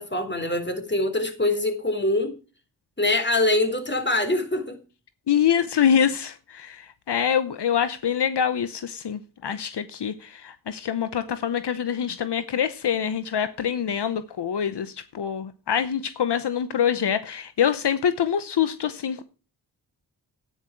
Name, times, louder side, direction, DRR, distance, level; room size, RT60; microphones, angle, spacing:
voice 1, 0.0-2.3 3.0-4.8, left 2 dB, 25° left, 3.9 m, -24 dB
voice 2, 5.3-19.2, left 8 dB, 80° left, 0.9 m, -25 dB
11.0 x 9.7 x 4.6 m
cardioid pair, 45°, 41 cm